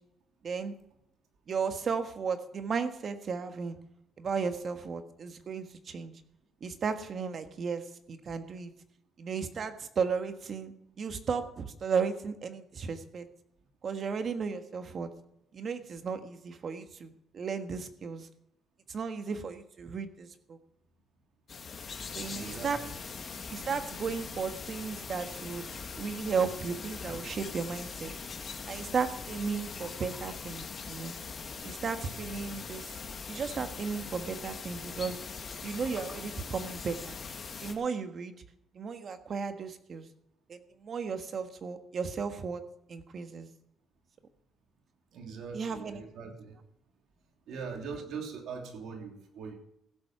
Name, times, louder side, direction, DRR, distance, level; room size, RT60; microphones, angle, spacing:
voice 1, 0.4-0.7 1.5-3.8 4.2-6.1 6.6-7.8 8.1-8.7 9.2-13.3 13.8-15.1 15.5-18.3 18.9-20.6 22.1-22.8 23.5-25.7 26.0-28.1 28.7-31.1 31.6-32.9 33.3-35.2 35.6-37.2 37.6-38.4 38.7-40.1 40.5-42.6 42.9-43.5 45.5-46.0, right 5 dB, 50° right, 8 dB, 1.5 m, -34 dB
sound 1, 21.5-37.7, left 5 dB, 45° left, 2.2 m, -41 dB
voice 2, 22.3-22.9 45.1-46.6 47.5-49.5, right 5 dB, 80° right, 2 dB, 3.1 m, -41 dB
16.0 x 7.9 x 5.9 m, 0.80 s
cardioid pair, 90°, 0 cm